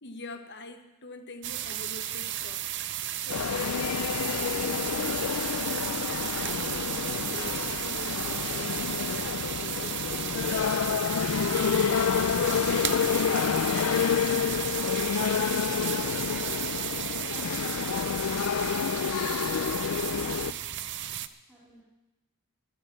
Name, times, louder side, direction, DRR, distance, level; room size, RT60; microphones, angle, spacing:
voice 1, 0.0-2.7 3.1-3.9 4.6-10.6 18.2-18.7 19.5-20.6, left 2 dB, 50° left, 6 dB, 1.2 m, -45 dB
sound 1, 1.4-21.3, right 12 dB, 50° right, 0.6 m, -34 dB
sound 2, 3.3-20.5, left 7 dB, 70° left, 0.4 m, -29 dB
voice 2, 15.5-17.3 21.5-21.8, right 2 dB, 5° right, -9 dB, 2.6 m, -55 dB
11.0 x 9.9 x 8.7 m, 0.99 s
head